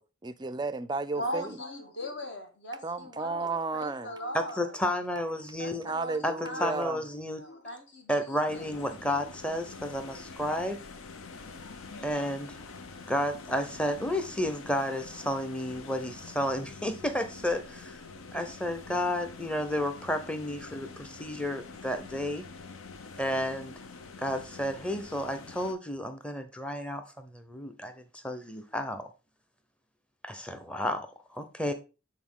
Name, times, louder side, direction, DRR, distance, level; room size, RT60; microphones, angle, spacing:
voice 1, 0.0-1.6 2.8-4.1 5.8-7.0, right 3 dB, 20° right, 0.4 m, -33 dB
voice 2, 1.1-4.7 5.6-6.8 7.3-8.7, left 1 dB, 55° left, 1.6 m, -39 dB
voice 3, 4.3-5.9 6.2-6.3 6.6-7.4 8.1-10.8 12.0-12.6 13.1-18.0 18.3-22.4 23.2-23.7 24.2-29.1 30.2-31.7, left 1 dB, 5° left, 0.7 m, -32 dB
sound 1, 8.5-25.7, left 4 dB, 85° left, 0.8 m, -46 dB
8.5 x 4.1 x 3.7 m
head